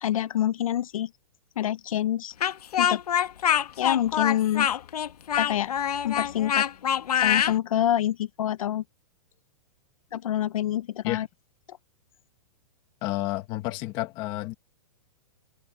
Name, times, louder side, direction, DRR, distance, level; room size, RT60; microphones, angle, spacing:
voice 1, 0.0-1.1 1.6-2.3 2.8-3.0 3.8-4.7 5.4-5.7 6.0-6.6 7.1-8.8 10.1-11.3, left 11 dB, 60° left, 0.9 m, -26 dB
Speech, 2.4-7.6, left 9 dB, 80° left, 1.6 m, -25 dB
voice 2, 13.0-14.5, left 17 dB, 20° left, 1.4 m, -30 dB
hypercardioid pair, 175°, 19 cm